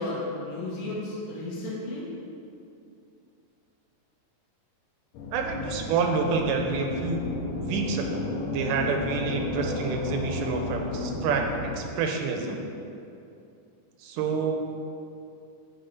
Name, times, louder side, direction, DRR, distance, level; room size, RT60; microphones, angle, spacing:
voice 1, 0.0-2.0, left 2 dB, 70° left, -5 dB, 1.9 m, -33 dB
sound 1, 5.1-11.8, left 2 dB, 85° left, 1.5 m, -33 dB
voice 2, 5.3-7.3 7.6-11.4 11.7-12.6 14.0-14.6, right 4 dB, 85° right, 3 dB, 2.2 m, -28 dB
7.8 x 3.9 x 4.1 m, 2.6 s
omnidirectional pair, 3.8 m